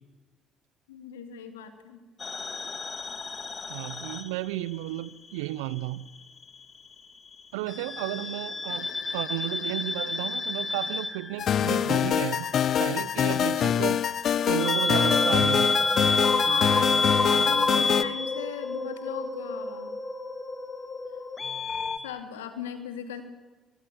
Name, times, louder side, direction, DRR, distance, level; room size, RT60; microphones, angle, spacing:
voice 1, 0.9-2.0 16.4-17.0 17.3-19.9 22.0-23.2, left 9 dB, 85° left, 2.8 m, -38 dB
sound 1, 2.2-5.0 5.3-6.5 7.7-22.0, left 3 dB, 35° left, 2.5 m, -29 dB
voice 2, 3.7-6.1 7.5-12.5 12.8-14.0 14.5-15.7, right 17 dB, 80° right, 0.8 m, -33 dB
sound 2, 11.4-18.0, left 9 dB, 55° left, 1.0 m, -25 dB
24.0 x 22.5 x 8.8 m
hypercardioid pair, 55°, 0 cm